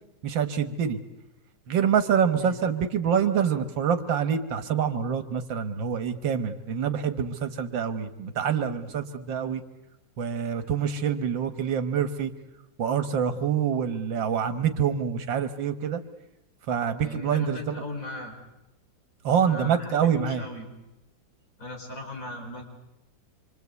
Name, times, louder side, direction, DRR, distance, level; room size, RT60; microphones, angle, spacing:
voice 1, 0.2-1.0 1.7-9.6 10.2-12.3 12.8-16.0 16.7-17.8 19.2-20.4, right 7 dB, 85° right, 9 dB, 2.0 m, -26 dB
voice 2, 17.0-18.3 19.4-20.7 21.6-22.6, left 2 dB, 45° left, 3 dB, 5.1 m, -38 dB
26.5 x 25.0 x 8.3 m, 0.90 s
omnidirectional pair, 2.0 m